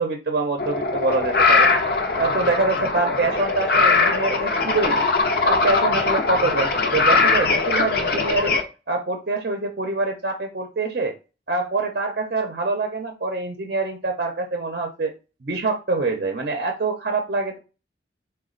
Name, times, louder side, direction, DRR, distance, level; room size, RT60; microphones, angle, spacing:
voice 1, 0.0-1.7 2.2-5.1 5.4-8.6 8.9-11.1 11.5-15.1 15.4-17.6, right 3 dB, 55° right, 4 dB, 0.6 m, -25 dB
sound 1, 0.6-8.6, left 4 dB, 55° left, 0.7 m, -20 dB
4.1 x 2.2 x 3.7 m, 0.31 s
head